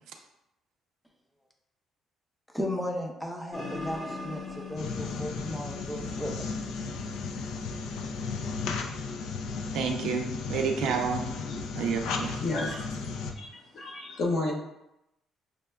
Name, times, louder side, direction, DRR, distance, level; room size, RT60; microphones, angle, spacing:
voice 1, 2.5-6.5, left 1 dB, ahead, 1 dB, 0.4 m, -35 dB
sound 1, 3.5-8.8, left 3 dB, 20° left, 0.9 m, -42 dB
sound 2, 4.8-13.3, left 4 dB, 80° left, 0.4 m, -35 dB
voice 2, 9.7-11.2 11.7-12.3, right 6 dB, 80° right, 3 dB, 0.5 m, -29 dB
voice 3, 12.4-13.0 13.4-14.5, left 2 dB, 50° left, -2 dB, 0.9 m, -32 dB
6.4 x 2.1 x 2.2 m, 0.85 s
cardioid pair, 160°, 0 cm